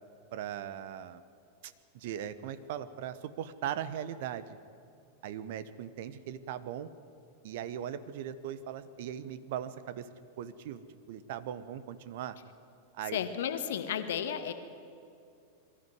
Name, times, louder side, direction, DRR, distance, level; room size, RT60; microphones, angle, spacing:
voice 1, 0.3-1.2 1.6-4.6 5.2-6.9 7.4-10.1 10.4-12.4 12.9-13.2, right 10 dB, 50° right, 14 dB, 1.0 m, -39 dB
voice 2, 13.1-14.5, left 9 dB, 60° left, 9 dB, 1.5 m, -33 dB
22.5 x 13.5 x 9.5 m, 2.5 s
figure-of-eight pair, 90°, 0 cm